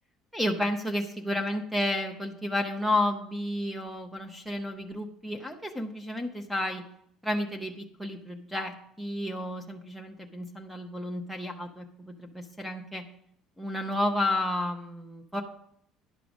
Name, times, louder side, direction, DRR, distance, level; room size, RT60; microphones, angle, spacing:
voice 1, 0.3-6.8 7.2-13.1 13.6-15.4, left 1 dB, ahead, 5 dB, 0.8 m, -31 dB
10.5 x 4.9 x 6.2 m, 0.69 s
cardioid pair, 110°, 0 cm